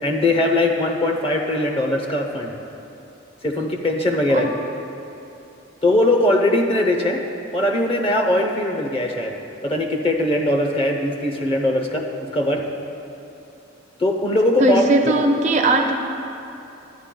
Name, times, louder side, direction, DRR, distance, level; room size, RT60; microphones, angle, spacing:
voice 1, 0.0-2.5 3.4-4.5 5.8-7.2 7.5-9.4 9.6-12.1 12.3-12.6 14.0-14.9, left 1 dB, 25° left, 2 dB, 0.7 m, -20 dB
voice 2, 14.6-16.0, right 2 dB, 35° right, 3 dB, 0.4 m, -18 dB
13.0 x 9.6 x 2.2 m, 2.8 s
head